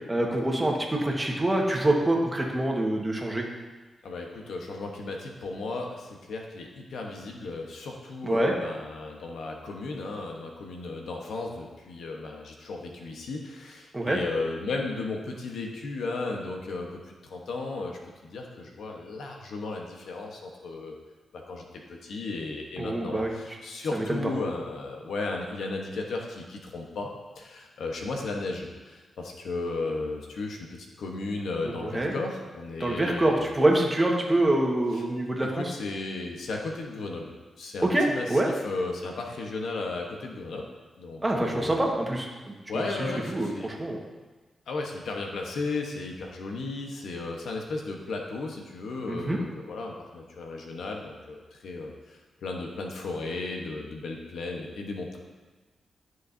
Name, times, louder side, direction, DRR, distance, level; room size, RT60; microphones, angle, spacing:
voice 1, 0.1-3.4 8.2-8.5 13.9-14.2 22.8-23.3 23.9-24.2 31.6-32.1 32.8-35.7 37.8-38.5 41.2-44.0 49.1-49.4, right 1 dB, 15° right, -1 dB, 1.6 m, -26 dB
voice 2, 4.0-16.9 17.2-21.0 21.3-30.7 31.0-33.5 34.9-35.0 35.4-40.6 41.0-41.9 42.7-43.7 44.7-55.2, left 3 dB, 80° left, 1 dB, 1.2 m, -35 dB
13.0 x 6.3 x 2.8 m, 1.3 s
cardioid pair, 75°, 0 cm